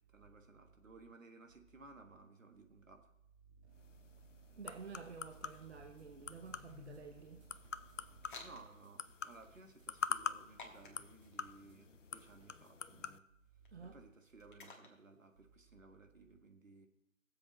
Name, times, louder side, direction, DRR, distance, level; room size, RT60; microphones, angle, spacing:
voice 1, 0.0-3.1 8.4-13.3 13.8-16.9, right 3 dB, 70° right, 1.6 m, -59 dB
voice 2, 3.7-8.5 13.7-14.0, right 5 dB, 55° right, 0.9 m, -52 dB
sound 1, 3.8-13.2, left 6 dB, 65° left, 0.6 m, -46 dB
sound 2, 5.3-12.9, equal, 25° right, 1.6 m, -70 dB
sound 3, 8.1-15.5, left 3 dB, 35° left, 1.6 m, -59 dB
19.5 x 7.5 x 3.1 m
figure-of-eight pair, 150°, 41 cm